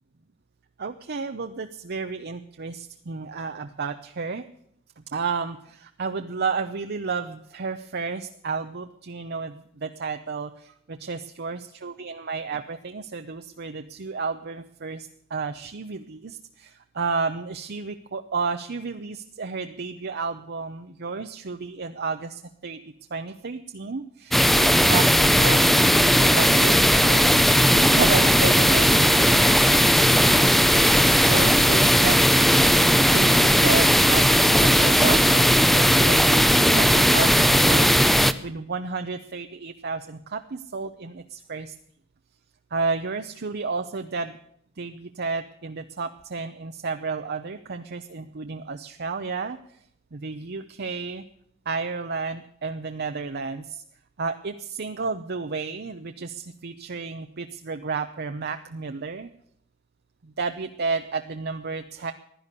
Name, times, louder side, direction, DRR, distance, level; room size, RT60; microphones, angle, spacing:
voice 1, 0.8-4.4 5.1-22.8 23.1-27.4 27.7-30.5 30.8-32.5 33.1-41.7 42.7-44.4 44.8-49.6 50.1-51.2 51.7-53.8 54.2-59.3 60.2-62.1, right 4 dB, 50° right, 7 dB, 0.7 m, -32 dB
sound 1, 24.3-38.3, equal, ahead, 0.6 m, -17 dB
16.0 x 11.5 x 6.7 m, 0.71 s
head